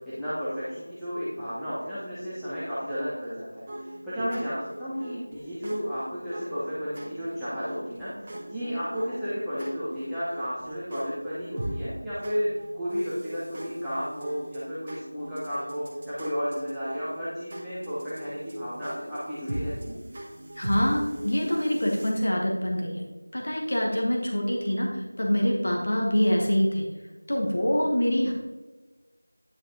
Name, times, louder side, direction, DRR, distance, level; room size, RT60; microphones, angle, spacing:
voice 1, 0.2-12.5 12.7-19.9, equal, ahead, -19 dB, 0.8 m, -33 dB
sound 1, 3.7-22.1, right 1 dB, 20° right, 1.1 m, -40 dB
voice 2, 20.6-23.0 23.3-26.9 27.3-28.3, equal, 45° left, 0 dB, 1.3 m, -25 dB
9.8 x 5.9 x 3.0 m, 1.2 s
figure-of-eight pair, 175°, 0 cm